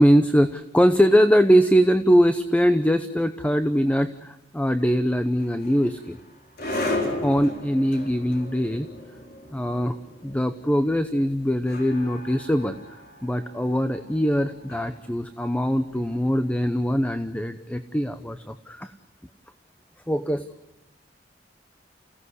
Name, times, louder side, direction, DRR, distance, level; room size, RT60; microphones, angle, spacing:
voice 1, 0.0-6.2 7.2-8.9 9.5-10.0 10.2-12.8 13.2-18.9 20.1-20.5, equal, 10° left, 9 dB, 0.8 m, -22 dB
sound 1, 5.4-16.5, left 1 dB, 55° left, 4.7 m, -36 dB
29.5 x 16.5 x 8.1 m, 0.96 s
head